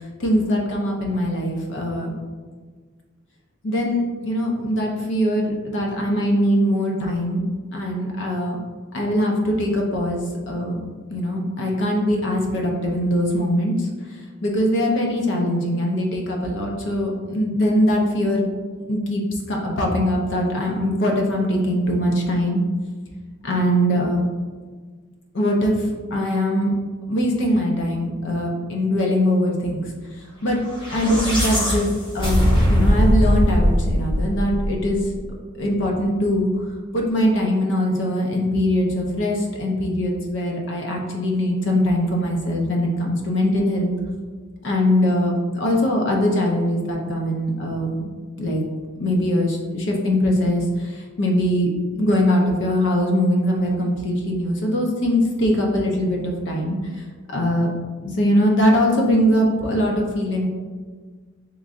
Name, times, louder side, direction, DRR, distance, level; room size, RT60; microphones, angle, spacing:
voice 1, 0.2-2.2 3.6-7.4 7.7-8.6 8.9-10.8 11.1-13.9 14.4-18.4 18.9-19.2 19.5-22.6 23.4-24.3 25.3-25.8 26.1-26.7 27.1-29.9 30.4-30.6 30.9-31.9 32.1-35.0 35.6-36.5 36.9-43.9 44.6-48.1 48.4-48.6 49.0-56.8 57.3-57.7 58.0-60.5, equal, 60° left, 0 dB, 0.5 m, -21 dB
sound 1, 30.7-35.1, equal, 25° left, 0.7 m, -20 dB
3.5 x 3.1 x 2.4 m, 1.5 s
head